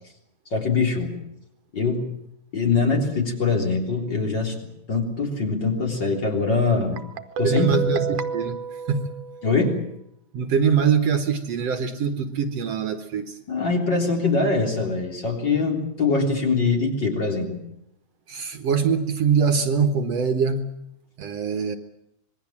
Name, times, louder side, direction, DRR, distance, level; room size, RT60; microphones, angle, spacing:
voice 1, 0.5-1.2 1.7-2.1 2.5-4.6 4.9-7.0 7.4-7.9 9.4-9.8 13.5-17.6, left 4 dB, 35° left, 1 dB, 4.2 m, -23 dB
Guitar, 7.0-9.8, right 5 dB, 85° right, 2.7 m, -30 dB
voice 2, 7.4-8.6 8.9-9.1 10.3-13.3 18.3-20.7 21.2-21.8, right 6 dB, 60° right, 7 dB, 2.3 m, -23 dB
26.0 x 21.5 x 7.4 m, 0.78 s
omnidirectional pair, 3.4 m